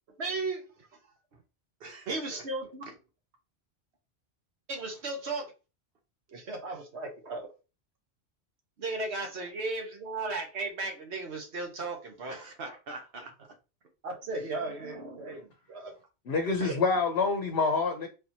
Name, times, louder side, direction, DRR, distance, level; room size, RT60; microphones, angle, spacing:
voice 1, 0.2-0.7 2.1-2.8 4.7-5.5 6.3-7.5 8.8-12.4 14.0-15.9 16.6-16.8, right 3 dB, 90° right, 1.4 m, -35 dB
voice 2, 1.8-2.4 2.9-3.0 9.4-9.5 12.3-13.6, right 3 dB, 65° right, 1.1 m, -44 dB
voice 3, 16.3-18.1, left 4 dB, 70° left, 0.9 m, -27 dB
4.0 x 2.9 x 2.7 m
omnidirectional pair, 1.1 m